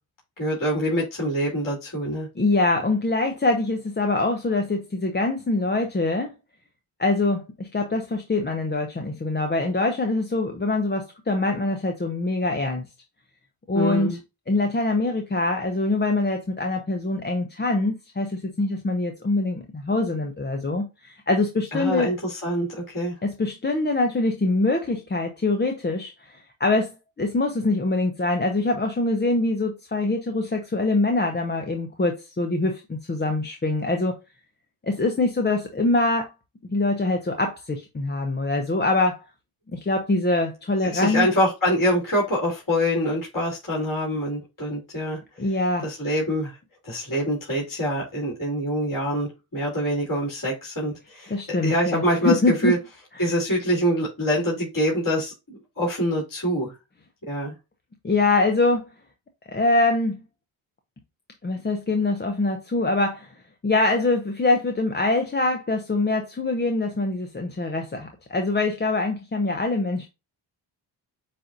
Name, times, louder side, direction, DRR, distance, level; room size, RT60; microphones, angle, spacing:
voice 1, 0.4-2.3 13.7-14.2 21.7-23.1 40.8-45.2 45.8-46.6 46.8-52.8 53.2-56.7 57.3-57.5, equal, 40° left, 3.0 m, -25 dB
voice 2, 2.4-6.3 7.0-12.8 13.7-14.2 14.5-22.1 23.2-34.1 34.8-36.3 36.7-39.2 39.7-41.3 45.4-45.8 51.3-52.7 53.2-53.3 58.0-58.9 59.5-60.2 61.4-63.3 63.6-70.1, left 2 dB, 20° left, 0.8 m, -24 dB
7.5 x 2.7 x 2.6 m
cardioid pair, 65°, 48 cm